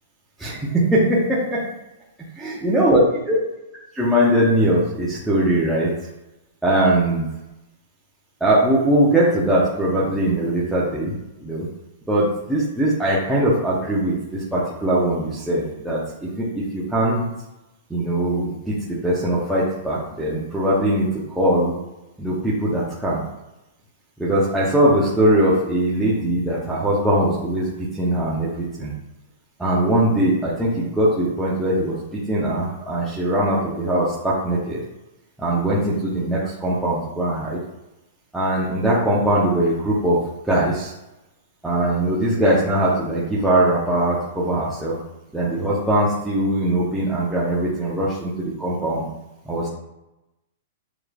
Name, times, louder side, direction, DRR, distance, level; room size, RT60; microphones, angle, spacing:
voice 1, 0.4-1.7 2.3-3.4 3.9-5.9 6.6-7.3 8.4-11.2 11.4-11.7 12.1-17.2 17.9-21.7 22.2-23.2 24.2-29.0 29.6-34.8 35.4-37.6 38.3-40.2 40.4-40.9 41.6-45.0 45.3-49.0 49.5-49.7, right 1 dB, 5° right, -8 dB, 0.8 m, -21 dB
7.0 x 3.1 x 2.4 m, 0.97 s
hypercardioid pair, 140°, 0 cm